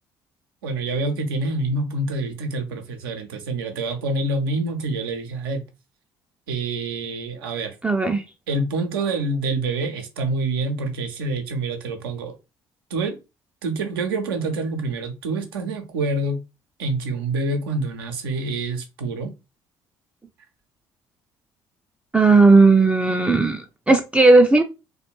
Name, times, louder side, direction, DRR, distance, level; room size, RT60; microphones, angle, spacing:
voice 1, 0.6-5.6 6.5-7.7 8.5-12.3 12.9-13.2 13.6-16.4 16.8-19.3, right 2 dB, 80° right, 0.5 m, -26 dB
voice 2, 7.8-8.2 22.1-24.6, right 3 dB, 10° right, 0.3 m, -15 dB
2.4 x 2.1 x 3.0 m
figure-of-eight pair, 50°, 12 cm